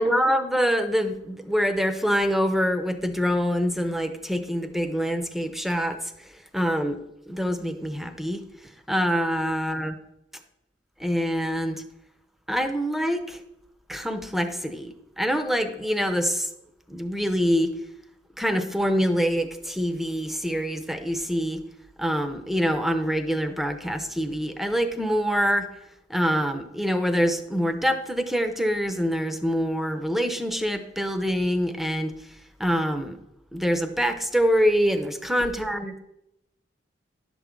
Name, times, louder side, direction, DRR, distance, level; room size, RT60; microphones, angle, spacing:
voice 1, 0.0-6.3 6.5-8.4 8.9-10.0 11.0-11.8 12.5-13.4 13.9-16.5 16.9-17.8 18.4-21.6 22.0-25.7 26.1-32.1 32.6-33.2 33.5-36.0, equal, ahead, 8 dB, 0.6 m, -25 dB
11.0 x 7.1 x 3.7 m, 0.85 s
head